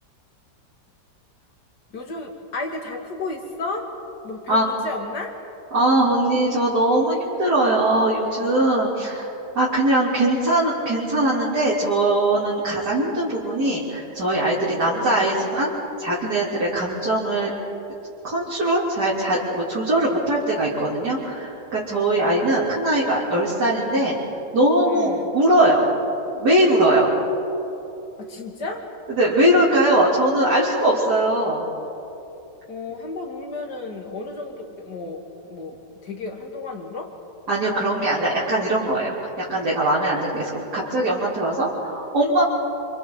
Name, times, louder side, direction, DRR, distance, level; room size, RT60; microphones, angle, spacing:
voice 1, 1.9-3.9 4.2-5.3 14.7-15.2 24.9-25.3 28.2-28.8 32.7-35.8 36.0-37.1, left 3 dB, 65° left, 1 dB, 2.9 m, -33 dB
voice 2, 5.7-9.3 9.6-15.7 16.0-17.5 18.2-24.1 24.5-25.9 26.4-27.1 29.1-31.7 37.5-42.4, right 1 dB, 65° right, -8 dB, 3.8 m, -21 dB
27.5 x 27.0 x 4.0 m, 2.9 s
omnidirectional pair, 1.9 m